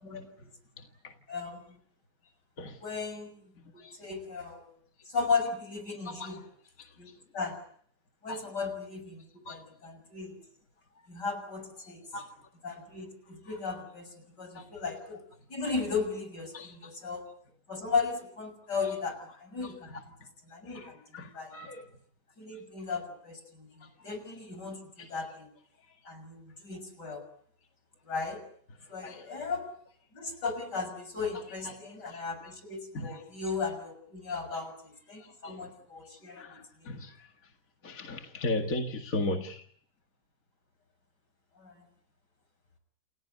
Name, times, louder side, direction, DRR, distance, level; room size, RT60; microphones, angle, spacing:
voice 1, 1.3-1.6 2.8-3.3 3.9-4.7 5.1-6.4 7.0-7.1 7.3-7.6 8.2-10.4 11.1-12.0 12.6-15.2 15.5-17.2 17.7-20.0 20.5-21.6 22.4-25.5 26.1-27.2 28.1-28.4 28.9-29.7 30.1-36.5 36.8-36.9 41.6-41.8, left 4 dB, 80° left, 7.2 m, -36 dB
voice 2, 6.0-6.4 8.3-8.4 9.5-9.6 12.1-12.3 13.5-13.8 14.6-14.7 16.5-16.6 19.9-20.0 20.7-21.9 25.0-25.1 29.0-29.2 31.3-31.8 32.4-32.5 32.9-33.2 34.5-34.6 35.4-35.5 36.4-37.1 37.8-39.6, left 2 dB, 55° left, 2.4 m, -36 dB
29.0 x 17.0 x 9.4 m
omnidirectional pair, 1.8 m